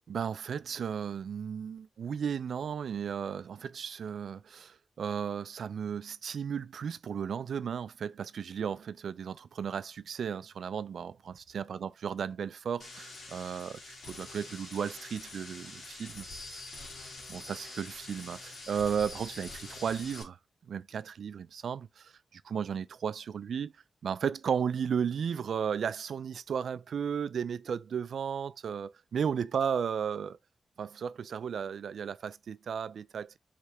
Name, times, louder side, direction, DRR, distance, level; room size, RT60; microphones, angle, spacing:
voice 1, 0.1-16.8 17.3-20.4 20.7-23.7 24.0-30.4 30.8-33.4, right 7 dB, 80° right, 0.3 m, -34 dB
sound 1, 12.8-20.2, left 2 dB, 80° left, 1.8 m, -45 dB
4.9 x 3.3 x 2.9 m
wide cardioid pair, 165°, 0 cm